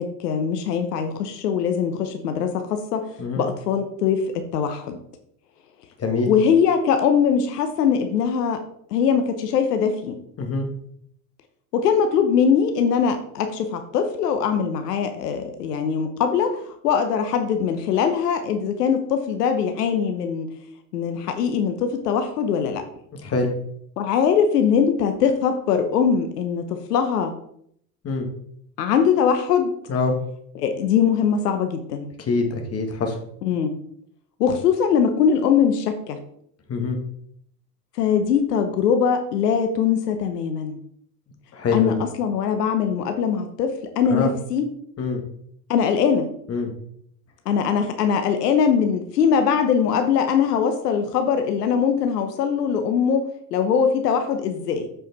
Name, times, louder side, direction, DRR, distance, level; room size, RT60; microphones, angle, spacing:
voice 1, 0.0-3.1 3.4-4.2 4.5-5.0 6.3-8.6 8.9-10.2 11.7-20.5 20.9-22.8 24.0-27.3 28.8-29.7 30.5-32.1 33.4-33.8 34.4-36.2 38.0-40.8 41.7-44.7 45.7-46.3 47.5-53.2 53.5-54.9, left 7 dB, 90° left, 7 dB, 1.0 m, -21 dB
voice 2, 32.2-33.2 36.7-37.0 41.5-41.9 44.1-44.3 45.0-45.2 46.5-46.7, left 3 dB, 30° left, 3 dB, 2.0 m, -24 dB
7.6 x 5.0 x 4.1 m, 0.68 s
hypercardioid pair, 100°, 46 cm